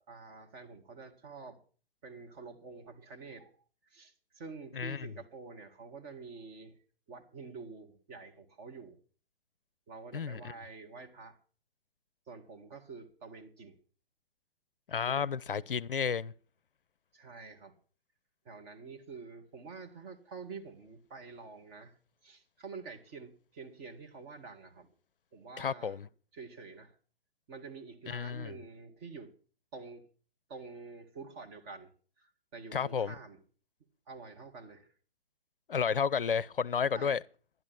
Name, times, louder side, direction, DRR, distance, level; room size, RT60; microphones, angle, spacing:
voice 1, 0.1-1.6 2.0-3.5 3.9-6.8 7.1-9.0 9.9-11.4 12.3-13.8 15.1-15.6 17.1-17.7 18.5-22.0 22.2-24.9 25.3-26.0 26.3-26.9 27.5-29.3 29.7-30.0 30.5-31.9 32.2-33.4 34.1-34.9 36.9-37.2, right 4 dB, 25° right, 1.9 m, -48 dB
voice 2, 4.7-5.1 10.1-10.6 14.9-16.3 25.6-26.1 28.1-28.5 32.7-33.1 35.7-37.2, left 6 dB, 65° left, 0.5 m, -32 dB
12.5 x 11.0 x 6.0 m
figure-of-eight pair, 130°, 29 cm